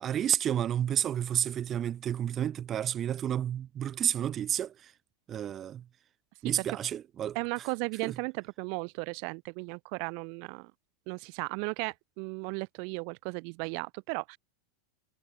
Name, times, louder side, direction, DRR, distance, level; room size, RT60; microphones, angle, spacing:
voice 1, 0.0-4.9 5.3-5.8 6.4-7.4 8.0-8.2, right 10 dB, 25° right, 0.8 m, -30 dB
voice 2, 7.3-10.7 11.1-14.4, right 40 dB or more, 55° right, 0.4 m, -35 dB
supercardioid pair, 140°, 0 cm